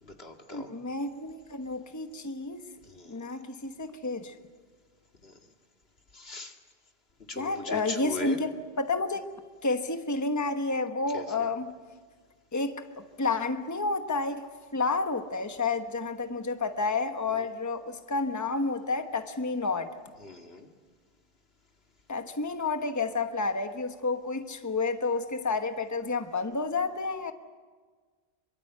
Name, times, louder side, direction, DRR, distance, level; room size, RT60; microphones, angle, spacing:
voice 1, 0.0-0.7 2.8-3.2 5.2-5.3 6.1-6.6 7.3-8.4 11.1-11.5 17.3-17.5 20.2-20.7, left 2 dB, 75° left, 3 dB, 2.5 m, -40 dB
voice 2, 0.5-2.6 3.1-4.3 7.4-9.2 9.6-11.7 12.5-12.8 13.2-14.5 14.7-19.9 22.1-27.3, left 3 dB, 20° left, 7 dB, 1.1 m, -30 dB
26.5 x 23.5 x 8.0 m, 1.5 s
omnidirectional pair, 1.0 m